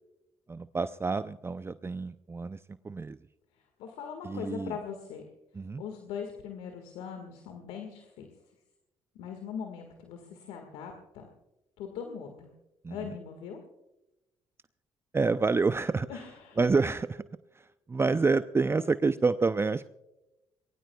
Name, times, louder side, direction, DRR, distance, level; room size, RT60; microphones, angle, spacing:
voice 1, 0.5-3.2 4.2-4.8 5.5-5.8 12.8-13.2 15.1-16.1 16.6-17.2 17.5-19.8, right 4 dB, 25° right, 13 dB, 0.5 m, -28 dB
voice 2, 3.5-5.2 5.8-8.3 9.2-11.3 11.8-12.5 12.9-13.6 16.1-16.6, left 7 dB, 80° left, 4 dB, 1.8 m, -40 dB
24.0 x 20.5 x 2.3 m, 0.97 s
hypercardioid pair, 60°, 11 cm